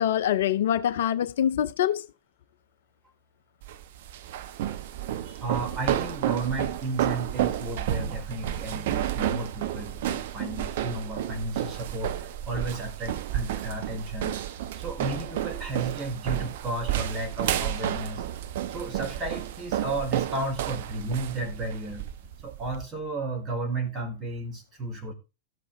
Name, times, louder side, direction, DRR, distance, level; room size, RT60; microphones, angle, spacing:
voice 1, 0.0-2.1, left 10 dB, 60° left, 0.5 m, -24 dB
sound 1, 3.6-22.8, right 11 dB, 55° right, 1.0 m, -31 dB
voice 2, 5.2-12.1 12.4-14.4 14.8-18.2 18.7-22.0 22.4-25.1, right 2 dB, 20° right, 4.5 m, -33 dB
13.5 x 7.7 x 3.7 m
figure-of-eight pair, 90°, 0 cm